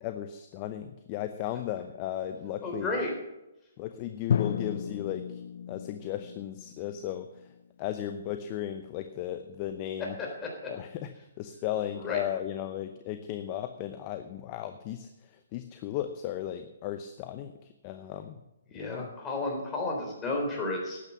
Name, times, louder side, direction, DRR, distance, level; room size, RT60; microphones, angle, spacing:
voice 1, 0.0-2.9 3.8-5.4 5.7-7.5 7.8-10.1 10.7-18.4 18.7-19.1, left 11 dB, 30° left, 9 dB, 0.7 m, -36 dB
voice 2, 2.6-3.1 10.2-10.7 11.9-12.2 18.7-21.0, left 2 dB, 15° left, 0 dB, 3.8 m, -32 dB
Drum, 4.3-8.1, left 8 dB, 60° left, 0.4 m, -34 dB
12.0 x 9.2 x 5.9 m, 0.95 s
hypercardioid pair, 145°, 0 cm